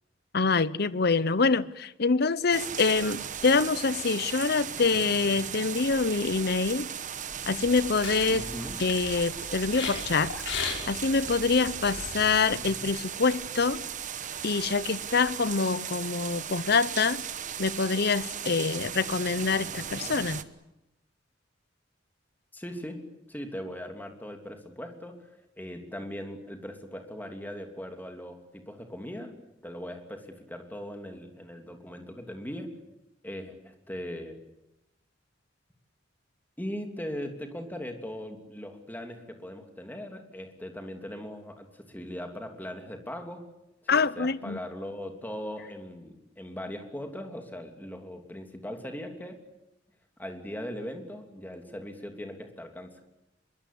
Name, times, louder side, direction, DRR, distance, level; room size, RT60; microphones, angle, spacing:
voice 1, 0.3-6.9 7.5-8.4 8.8-10.3 10.9-13.8 14.4-17.2 17.6-20.4 43.9-44.6, left 4 dB, 60° left, 0.8 m, -25 dB
sound 1, 2.5-20.4, right 8 dB, 45° right, 1.2 m, -37 dB
sound 2, 7.6-12.6, left 4 dB, 80° left, 6.1 m, -38 dB
voice 2, 8.3-8.8 12.6-12.9 22.5-25.3 25.6-29.3 29.6-32.7 33.2-34.4 36.6-43.5 43.8-49.4 50.2-53.0, equal, 10° left, 3.0 m, -39 dB
24.5 x 22.5 x 8.5 m
head